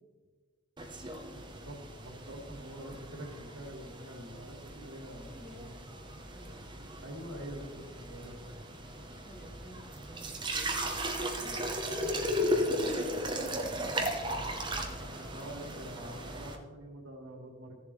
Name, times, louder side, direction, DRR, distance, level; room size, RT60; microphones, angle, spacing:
sound 1, 0.8-16.6, equal, 20° right, 0.9 m, -36 dB
voice 1, 1.4-5.7 7.0-8.5 14.9-17.7, right 1 dB, 85° right, 0 dB, 2.3 m, -45 dB
voice 2, 5.2-5.9 6.2-6.7 9.2-9.8 10.1-10.7 11.2-13.3, right 1 dB, ahead, -6 dB, 2.4 m, -51 dB
15.0 x 7.3 x 3.3 m, 1.4 s
head